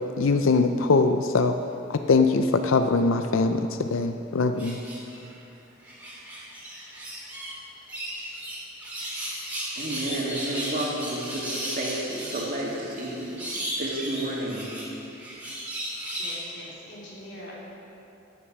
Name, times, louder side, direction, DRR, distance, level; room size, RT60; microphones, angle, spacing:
voice 1, 0.2-1.5 1.9-4.8, left 3 dB, 80° left, 8 dB, 0.5 m, -22 dB
sound 1, 4.6-5.3 5.8-7.5 7.9-16.4, equal, 10° right, 2.7 m, -35 dB
voice 2, 9.8-14.7 16.1-16.2, right 1 dB, 45° right, -3 dB, 2.5 m, -31 dB
voice 3, 15.7-17.5, equal, 60° left, -5 dB, 3.3 m, -44 dB
14.0 x 8.6 x 6.2 m, 2.8 s
head